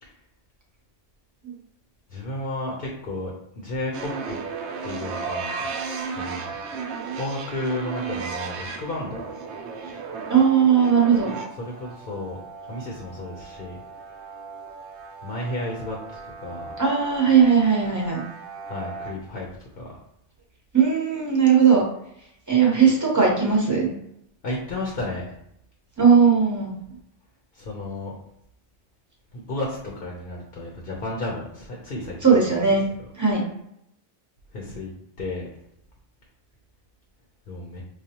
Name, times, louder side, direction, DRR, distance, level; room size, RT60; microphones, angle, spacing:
voice 1, 2.1-4.4 4.8-5.7 6.1-6.6 7.1-9.2 11.6-12.4 12.7-13.8 15.2-16.7 18.6-19.5 19.8-20.0 24.4-25.3 27.5-28.1 29.3-32.4 34.5-34.9 35.2-35.5 37.5-37.8, left 2 dB, 55° left, -2 dB, 0.9 m, -32 dB
sound 1, 3.9-19.1, right 5 dB, 85° right, 0.9 m, -35 dB
voice 2, 10.3-11.3 16.8-18.2 20.7-21.8 22.5-23.9 26.0-26.7 32.2-32.9 33.2-33.4, right 6 dB, 20° right, -2 dB, 0.9 m, -18 dB
4.9 x 2.2 x 2.9 m, 0.75 s
omnidirectional pair, 1.1 m